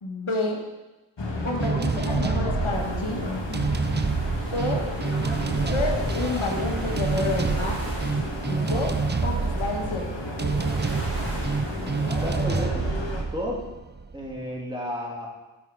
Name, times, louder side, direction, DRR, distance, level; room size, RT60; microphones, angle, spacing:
voice 1, 0.0-0.6 1.4-3.2 4.5-4.8 5.7-7.8 8.5-8.9 9.2-10.1, left 2 dB, 85° left, 0 dB, 1.5 m, -29 dB
sound 1, 1.2-13.2, left 1 dB, 60° left, 1.4 m, -32 dB
sound 2, 1.6-14.3, right 4 dB, 25° right, 0.3 m, -28 dB
sound 3, 2.7-12.5, right 1 dB, 50° right, 2.5 m, -40 dB
voice 2, 11.8-12.9 13.3-13.6 14.1-15.3, equal, 10° right, -3 dB, 2.2 m, -33 dB
9.1 x 6.9 x 4.9 m, 1.1 s
wide cardioid pair, 55°, 48 cm